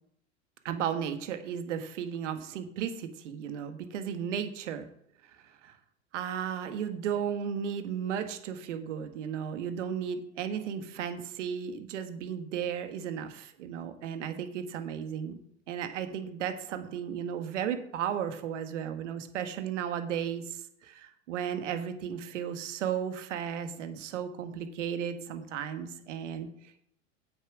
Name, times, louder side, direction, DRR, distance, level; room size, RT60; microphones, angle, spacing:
voice 1, 0.6-4.9 5.3-5.8 6.1-15.4 15.7-26.8, right 8 dB, 70° right, 9 dB, 1.6 m, -35 dB
8.7 x 8.1 x 6.1 m, 0.72 s
hypercardioid pair, 95°, 38 cm